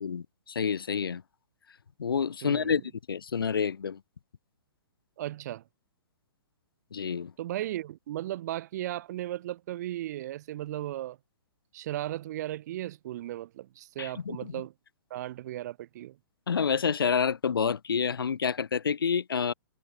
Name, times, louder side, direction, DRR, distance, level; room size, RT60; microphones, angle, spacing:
voice 1, 0.0-1.2 2.0-2.8 3.1-4.0 6.9-7.3 14.0-14.5 16.5-19.5, left 6 dB, 90° left, 1.1 m, -28 dB
voice 2, 2.4-2.8 5.2-5.6 7.4-11.2 11.7-14.7 15.1-16.2, right 14 dB, 50° right, 2.0 m, -36 dB
hypercardioid pair, 140°, 12 cm